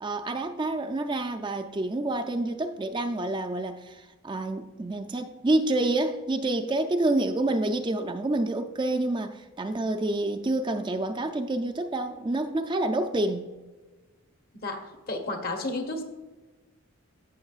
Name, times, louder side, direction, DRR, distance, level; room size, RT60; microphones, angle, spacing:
voice 1, 0.0-13.5, right 2 dB, 20° right, 0.3 m, -28 dB
voice 2, 14.6-16.0, left 2 dB, 45° left, 1.1 m, -32 dB
15.0 x 6.3 x 2.4 m
head